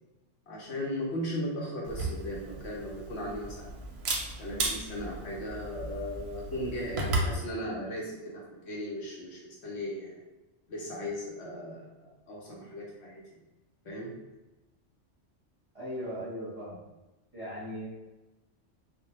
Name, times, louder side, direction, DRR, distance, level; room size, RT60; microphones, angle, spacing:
voice 1, 0.5-3.7 4.4-10.2 10.7-13.2 13.8-14.2, left 1 dB, 70° left, -3 dB, 0.8 m, -37 dB
Camera, 1.8-7.4, right 2 dB, 65° right, 0.7 m, -35 dB
voice 2, 15.7-16.9 17.3-17.9, equal, 30° right, -10 dB, 0.9 m, -38 dB
2.1 x 2.1 x 2.8 m, 1.0 s
omnidirectional pair, 1.3 m